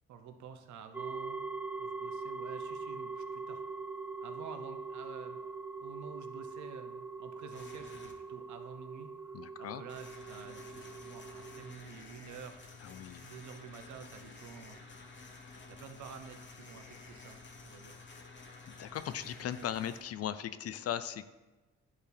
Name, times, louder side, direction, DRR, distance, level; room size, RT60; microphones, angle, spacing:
voice 1, 0.1-1.4 1.8-3.6 4.2-5.4 5.8-12.6 13.2-15.4 15.7-18.0, right 6 dB, 75° right, 8 dB, 0.8 m, -50 dB
sound 1, 0.9-11.7, right 4 dB, 5° right, 0.4 m, -42 dB
sound 2, 7.5-8.1 9.9-20.0, left 4 dB, 40° left, 1.1 m, -51 dB
voice 2, 9.3-9.8 12.9-13.2 18.8-21.3, left 10 dB, 55° left, 13 dB, 0.5 m, -38 dB
10.5 x 4.6 x 3.4 m, 1.2 s
cardioid pair, 90°, 30 cm